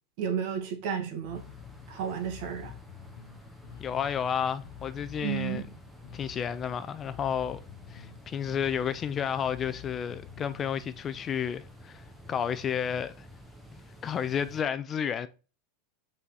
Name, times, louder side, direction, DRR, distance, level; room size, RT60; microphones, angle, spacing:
voice 1, 0.2-1.4 1.9-2.7 5.2-5.7, right 8 dB, 60° right, 1.8 m, -32 dB
Bass guitar, 1.2-10.7, left 12 dB, 75° left, 1.0 m, -49 dB
sound 1, 1.3-14.6, equal, ahead, 1.0 m, -50 dB
voice 2, 3.8-5.7 6.1-7.6 7.9-13.3 14.0-15.3, left 8 dB, 25° left, 0.4 m, -31 dB
5.6 x 4.1 x 4.8 m
supercardioid pair, 135°, 0 cm